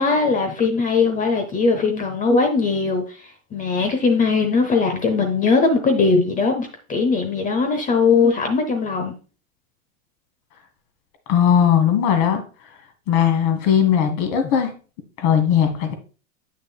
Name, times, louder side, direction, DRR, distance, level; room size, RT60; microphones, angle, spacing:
voice 1, 0.0-9.2, left 4 dB, 20° left, 5 dB, 0.8 m, -20 dB
voice 2, 11.3-12.4 13.1-14.7 15.2-16.0, left 8 dB, 50° left, 6 dB, 1.8 m, -18 dB
8.1 x 6.2 x 2.3 m, 0.36 s
hypercardioid pair, 120°, 39 cm